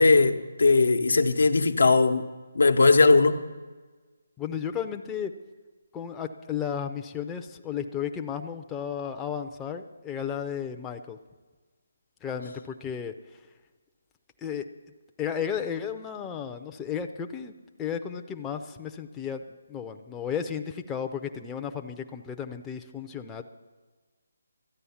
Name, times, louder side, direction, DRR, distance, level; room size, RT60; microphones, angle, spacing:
voice 1, 0.0-2.3 2.5-3.4, left 3 dB, 85° left, 1.0 m, -19 dB
voice 2, 4.4-5.3 5.9-11.2 12.2-13.1 14.4-14.6 15.2-17.5 17.8-19.4 19.7-23.4, left 8 dB, 10° left, 0.5 m, -33 dB
13.5 x 9.7 x 7.1 m
hypercardioid pair, 160°, 0 cm